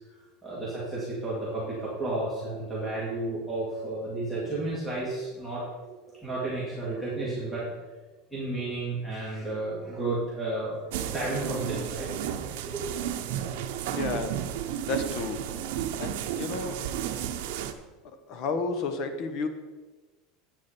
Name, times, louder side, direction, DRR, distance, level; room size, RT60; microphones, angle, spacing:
voice 1, 0.4-7.6 8.3-12.1 12.6-12.9, right 2 dB, 5° left, -8 dB, 2.2 m, -32 dB
sound 1, 10.9-17.7, right 10 dB, 70° right, 0.9 m, -33 dB
voice 2, 13.9-14.3 14.8-15.4 16.0-16.8 18.3-19.5, left 4 dB, 40° left, 8 dB, 1.1 m, -31 dB
9.9 x 8.5 x 4.4 m, 1.3 s
supercardioid pair, 165°, 0 cm